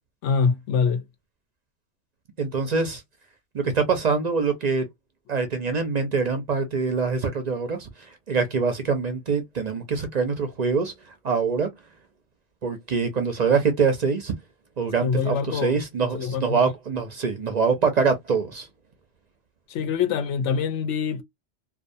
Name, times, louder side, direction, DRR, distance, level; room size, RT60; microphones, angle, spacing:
voice 1, 0.2-1.0 15.0-15.8 16.1-16.6 19.7-21.2, left 6 dB, 85° left, 0.9 m, -24 dB
voice 2, 2.4-3.0 3.5-4.9 5.3-10.9 11.2-11.7 12.6-14.3 14.8-18.7, right 5 dB, 50° right, 0.5 m, -24 dB
2.4 x 2.3 x 2.6 m
omnidirectional pair, 1.2 m